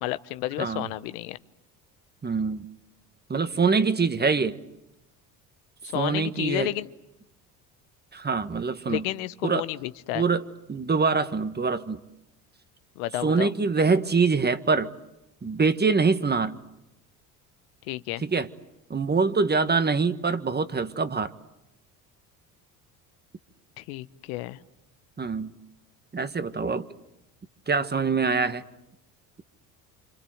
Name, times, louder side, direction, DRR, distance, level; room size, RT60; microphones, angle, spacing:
voice 1, 0.0-1.4 5.8-6.9 8.9-10.2 13.0-13.5 17.9-18.2 23.8-24.6, left 16 dB, 80° left, 13 dB, 1.0 m, -31 dB
voice 2, 0.6-0.9 2.2-2.6 3.3-4.6 5.9-6.7 8.1-9.0 9.4-9.6 10.1-10.4 10.7-12.0 13.2-14.9 15.4-16.6 18.2-18.5 18.9-21.3 25.2-25.5 26.1-26.9 27.7-28.6, right 4 dB, 25° right, 11 dB, 1.6 m, -24 dB
28.5 x 26.5 x 7.9 m, 0.90 s
hypercardioid pair, 70°, 43 cm